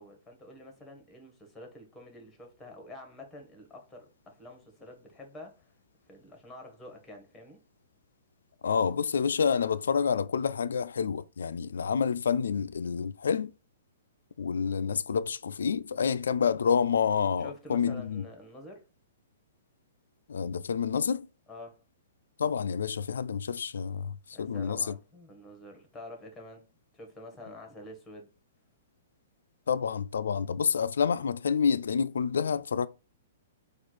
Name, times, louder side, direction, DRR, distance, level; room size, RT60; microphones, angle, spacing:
voice 1, 0.0-5.7 6.1-7.6 17.4-18.9 21.5-21.8 24.3-26.7 26.9-28.3, left 1 dB, 10° left, 1.5 m, -48 dB
voice 2, 8.6-13.5 14.4-18.2 20.3-21.3 22.4-24.9 29.7-32.9, left 6 dB, 80° left, 0.3 m, -28 dB
4.4 x 2.4 x 4.5 m
hypercardioid pair, 130°, 0 cm